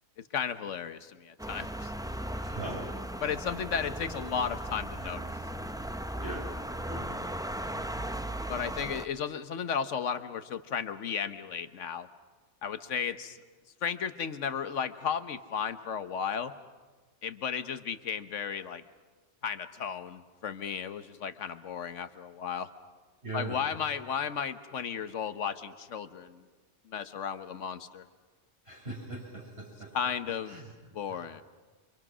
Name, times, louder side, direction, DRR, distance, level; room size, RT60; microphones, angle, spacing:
voice 1, 0.3-1.9 3.2-5.3 8.5-12.1 12.6-13.4 13.8-16.5 17.2-18.8 19.4-22.7 23.3-26.4 26.9-28.0 29.9-30.6 30.9-31.4, left 7 dB, 85° left, 10 dB, 1.3 m, -34 dB
sound 1, 1.4-9.1, right 1 dB, 5° right, 0.3 m, -37 dB
voice 2, 2.4-2.9 6.2-6.5 6.9-7.2 23.2-23.6 28.7-29.9 30.5-30.7, right 2 dB, 55° right, -2 dB, 7.2 m, -39 dB
28.5 x 25.0 x 6.2 m, 1.4 s
omnidirectional pair, 1.2 m